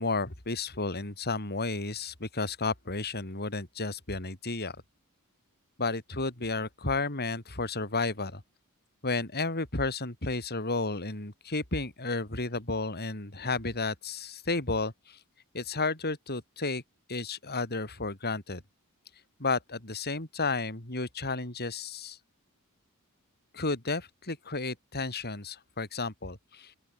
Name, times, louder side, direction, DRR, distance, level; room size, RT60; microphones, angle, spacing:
voice 1, 0.0-4.8 5.8-8.4 9.0-15.2 15.5-16.8 17.1-18.6 19.4-22.2 23.5-26.7, left 3 dB, 45° left, 5.0 m, -32 dB
open air
head